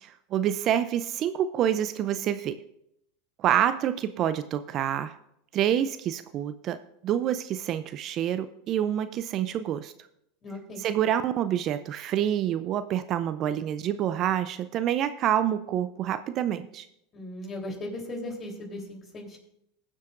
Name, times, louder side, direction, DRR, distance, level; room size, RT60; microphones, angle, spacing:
voice 1, 0.0-2.5 3.4-5.2 5.5-6.8 7.0-9.9 10.8-16.9, right 10 dB, 45° right, 11 dB, 0.5 m, -27 dB
voice 2, 10.4-10.8 17.1-19.4, left 1 dB, 30° left, 1 dB, 3.5 m, -37 dB
21.5 x 7.4 x 2.5 m, 0.78 s
hypercardioid pair, 95°, 0 cm